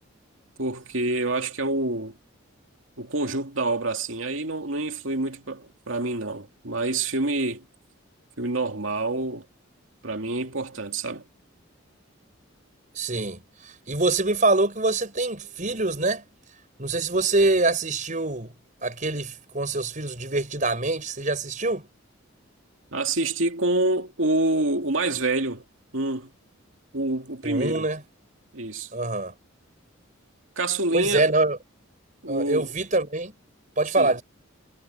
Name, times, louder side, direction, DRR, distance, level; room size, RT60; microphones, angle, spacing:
voice 1, 0.6-2.1 3.0-7.6 8.4-9.4 10.0-11.2 22.9-25.6 25.9-26.3 26.9-27.9 28.5-28.9 30.6-31.3 32.2-32.7 34.0-34.1, right 2 dB, 75° right, 2.5 m, -27 dB
voice 2, 12.9-16.2 16.8-18.5 18.8-21.9 27.4-28.0 28.9-29.3 30.9-31.6 32.3-33.3 33.8-34.2, right 2 dB, 40° right, 6.3 m, -25 dB
head